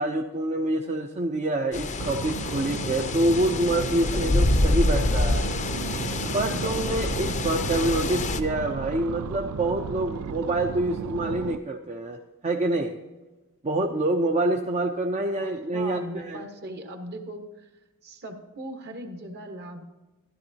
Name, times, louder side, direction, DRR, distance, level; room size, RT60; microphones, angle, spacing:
voice 1, 0.0-5.5 6.3-13.0 13.6-16.4, right 1 dB, 30° right, 2 dB, 0.6 m, -26 dB
sound 1, 1.7-8.4, left 2 dB, 35° left, 0.6 m, -26 dB
sound 2, 2.0-11.6, right 6 dB, 90° right, 0.4 m, -34 dB
voice 2, 15.2-17.7 18.0-19.8, right 1 dB, 50° right, 4 dB, 1.4 m, -39 dB
13.5 x 12.5 x 2.8 m, 1.1 s
head